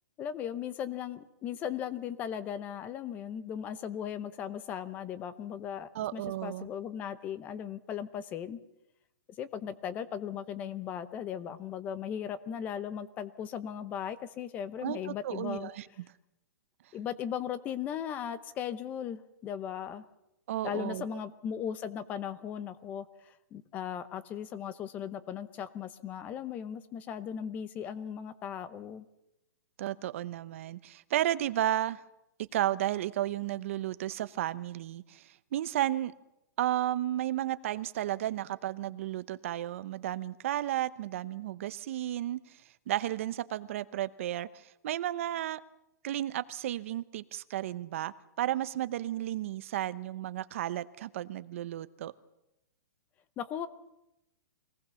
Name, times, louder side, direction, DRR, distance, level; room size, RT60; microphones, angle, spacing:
voice 1, 0.2-8.6 9.4-15.7 16.9-20.0 20.6-29.1 53.4-53.7, left 9 dB, 15° left, 15 dB, 0.8 m, -37 dB
voice 2, 5.9-6.7 14.8-15.9 20.5-21.0 29.8-32.0 32.5-36.1 36.6-42.4 42.9-45.6 46.0-52.1, right 13 dB, 40° right, 15 dB, 0.8 m, -33 dB
24.5 x 19.0 x 7.0 m, 0.89 s
hypercardioid pair, 170°, 11 cm